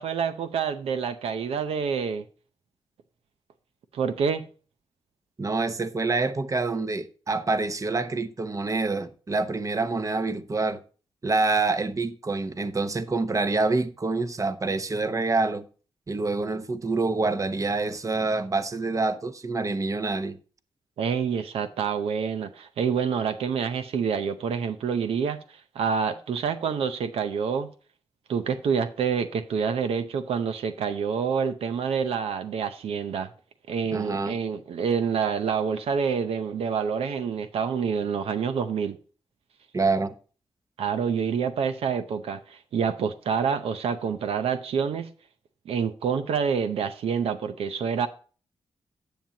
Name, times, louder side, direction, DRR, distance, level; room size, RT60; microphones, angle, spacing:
voice 1, 0.0-2.2 3.9-4.4 21.0-25.4 25.7-27.7 28.3-33.3 33.7-39.0 40.8-45.1 45.7-48.1, right 6 dB, 85° right, 0.6 m, -27 dB
voice 2, 5.4-10.8 11.2-15.6 16.1-20.4 33.9-34.4 39.7-40.1, right 3 dB, 35° right, 0.9 m, -26 dB
10.0 x 7.4 x 2.8 m
cardioid pair, 60°, 10 cm